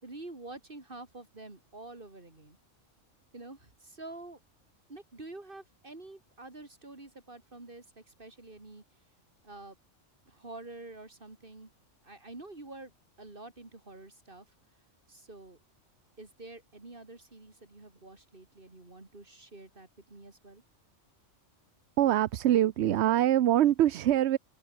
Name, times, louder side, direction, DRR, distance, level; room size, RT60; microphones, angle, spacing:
voice 1, 0.0-2.6 3.3-4.4 4.9-8.8 9.4-9.8 10.3-11.7 12.0-12.9 13.2-14.5 15.1-15.6 16.2-20.6, right 2 dB, 45° right, 3.7 m, -47 dB
voice 2, 22.0-24.4, right 12 dB, 65° right, 0.9 m, -24 dB
open air
omnidirectional pair, 1.3 m